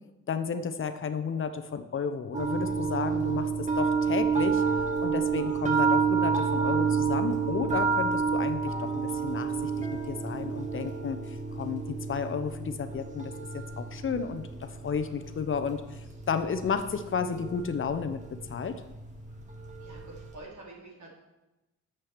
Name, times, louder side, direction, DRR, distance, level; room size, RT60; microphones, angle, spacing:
voice 1, 0.3-4.6 5.0-11.2 11.5-18.2 18.5-18.8, left 6 dB, 45° left, 10 dB, 0.8 m, -32 dB
sound 1, 2.3-20.3, right 5 dB, 25° right, 1.9 m, -30 dB
voice 2, 19.8-21.1, right 2 dB, 70° right, -4 dB, 3.8 m, -47 dB
7.5 x 7.5 x 6.7 m, 1.0 s
cardioid pair, 90°, 30 cm